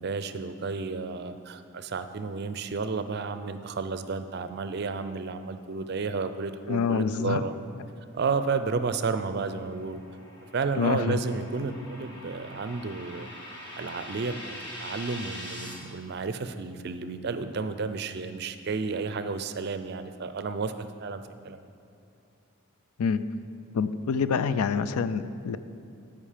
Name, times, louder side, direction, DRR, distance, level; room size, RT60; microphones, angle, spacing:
voice 1, 0.0-7.6 8.1-10.0 10.5-13.3 13.7-21.7, right 4 dB, 50° right, 10 dB, 0.4 m, -32 dB
voice 2, 6.7-7.4 10.7-11.2 23.0-23.2 23.7-25.6, left 5 dB, 90° left, 13 dB, 0.4 m, -26 dB
sound 1, 9.0-15.7, left 1 dB, 50° left, 1.6 m, -43 dB
13.0 x 5.1 x 5.0 m, 2.6 s
head